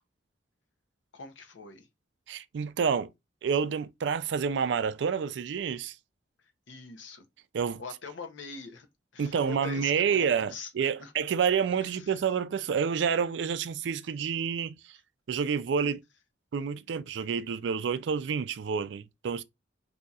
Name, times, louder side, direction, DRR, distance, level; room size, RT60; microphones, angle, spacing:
voice 1, 1.1-1.9 6.7-7.2 7.8-8.9 9.1-11.1 11.8-12.2, left 5 dB, 80° left, 0.7 m, -43 dB
voice 2, 2.3-3.1 3.4-6.0 7.5-7.8 9.2-15.0 15.3-16.0 16.5-19.4, right 6 dB, 65° right, 0.3 m, -29 dB
2.7 x 2.4 x 4.0 m
head